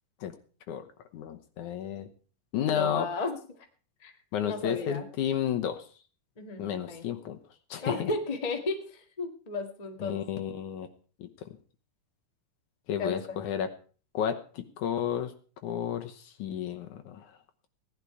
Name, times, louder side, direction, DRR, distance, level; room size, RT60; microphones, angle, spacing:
voice 1, 1.1-2.1 2.5-3.1 4.3-5.9 6.6-7.4 7.7-8.1 10.0-10.9 11.2-11.6 12.9-13.7 14.1-15.3 15.6-17.3, left 9 dB, 70° left, 6 dB, 2.2 m, -32 dB
voice 2, 2.7-3.4 4.0-4.1 4.4-5.0 6.4-7.1 7.8-10.2 13.0-13.2, left 3 dB, 20° left, 3 dB, 1.1 m, -34 dB
17.5 x 11.0 x 4.8 m, 0.41 s
omnidirectional pair, 4.0 m